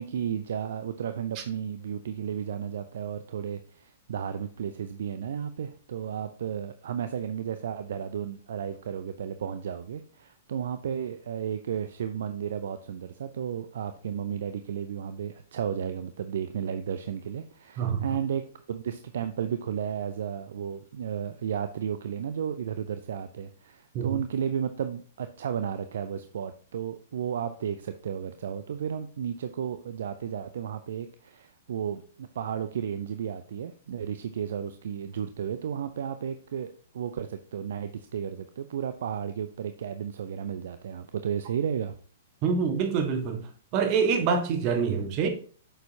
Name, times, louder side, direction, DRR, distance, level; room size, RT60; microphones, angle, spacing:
voice 1, 0.0-18.4 18.7-42.0, right 8 dB, 60° right, 0.5 m, -33 dB
voice 2, 42.4-43.5 43.7-45.3, right 6 dB, 35° right, 1.5 m, -26 dB
9.0 x 6.8 x 2.8 m
figure-of-eight pair, 105°, 0 cm